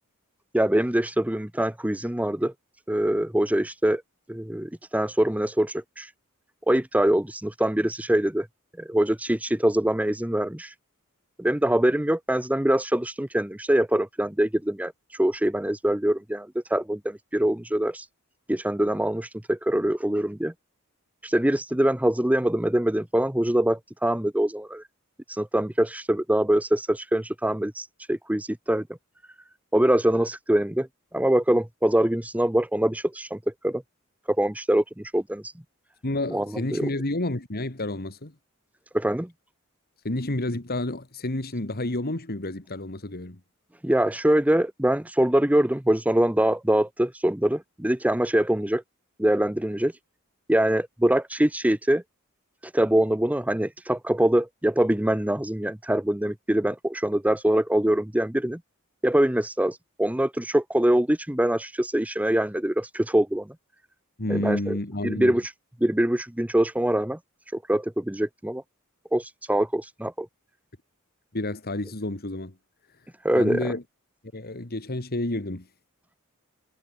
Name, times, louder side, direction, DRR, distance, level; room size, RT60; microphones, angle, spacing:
voice 1, 0.5-2.5 2.9-4.0 4.3-6.1 6.7-8.5 8.8-10.7 11.4-18.1 18.5-20.5 21.2-24.8 25.3-28.8 29.7-30.9 31.1-33.8 34.3-35.5 36.3-36.5 36.7-36.9 38.9-39.3 43.8-48.8 49.2-50.0 50.5-52.0 52.6-58.6 59.0-63.5 64.3-64.8 65.0-65.5 65.8-67.2 67.5-68.6 69.1-70.3 73.2-73.7, right 1 dB, 5° right, 0.8 m, -24 dB
voice 2, 36.0-38.3 40.0-43.4 64.2-65.4 71.3-72.5 73.3-73.8 74.3-75.7, left 1 dB, 45° left, 2.3 m, -30 dB
head